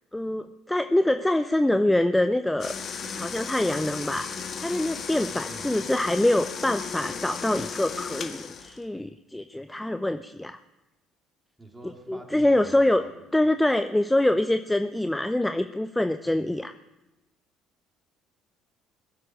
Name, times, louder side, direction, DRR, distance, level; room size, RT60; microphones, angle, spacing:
voice 1, 0.1-2.7 3.2-10.6 12.1-13.0 13.3-16.7, left 1 dB, 10° left, 10 dB, 0.7 m, -25 dB
sound 1, 2.6-8.8, left 6 dB, 45° left, 1.6 m, -35 dB
voice 2, 5.5-5.8 11.6-13.2, right 2 dB, 15° right, 1 dB, 3.9 m, -46 dB
20.5 x 7.7 x 8.8 m, 1.0 s
figure-of-eight pair, 55°, 0 cm